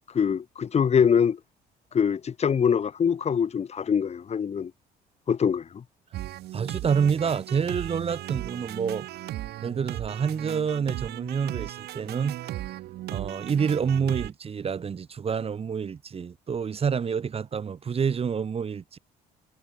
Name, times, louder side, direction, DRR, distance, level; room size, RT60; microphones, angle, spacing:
voice 1, 0.1-1.4 1.9-4.7 5.3-5.8, left 7 dB, 40° left, 3.9 m, -24 dB
sound 1, 6.1-14.3, right 15 dB, 75° right, 2.9 m, -36 dB
voice 2, 6.5-9.1 9.6-12.5 13.1-19.0, right 6 dB, 35° right, 2.2 m, -28 dB
cardioid pair, 110°, 17 cm